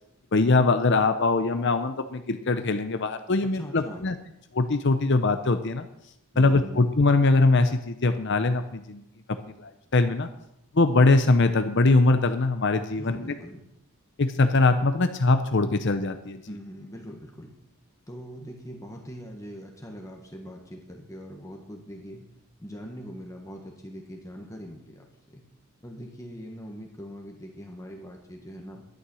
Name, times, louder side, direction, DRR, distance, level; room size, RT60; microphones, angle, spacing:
voice 1, 0.3-4.1 4.5-5.9 6.4-9.0 9.6-10.3 10.7-13.3 14.2-16.5, left 3 dB, 55° left, 9 dB, 0.7 m, -22 dB
voice 2, 3.4-4.1 6.3-6.9 12.9-13.6 16.5-17.5 18.1-22.3 22.6-25.4 25.8-28.8, equal, 15° left, 1 dB, 1.5 m, -42 dB
11.5 x 9.8 x 6.3 m, 0.83 s
head